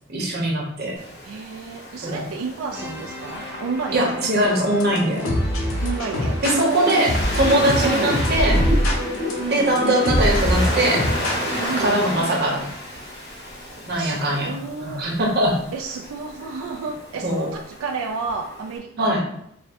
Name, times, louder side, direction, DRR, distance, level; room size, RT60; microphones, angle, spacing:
voice 1, 0.1-1.0 2.0-2.3 3.9-5.2 6.6-8.6 9.5-11.0 11.8-12.7 13.9-15.6 17.2-17.5 19.0-19.2, right 1 dB, 50° right, -1 dB, 0.9 m, -21 dB
Waves surf, 0.9-18.8, equal, 55° left, 1.1 m, -33 dB
voice 2, 1.2-4.3 5.8-7.1 7.8-8.2 9.4-9.8 11.5-12.0 14.0-15.1 15.7-19.2, right 4 dB, 90° right, 3 dB, 0.3 m, -31 dB
sound 1, 2.7-12.8, right 1 dB, 10° right, 0.6 m, -38 dB
sound 2, 4.4-11.6, equal, 85° left, 0.8 m, -24 dB
3.5 x 2.1 x 4.2 m, 0.73 s
head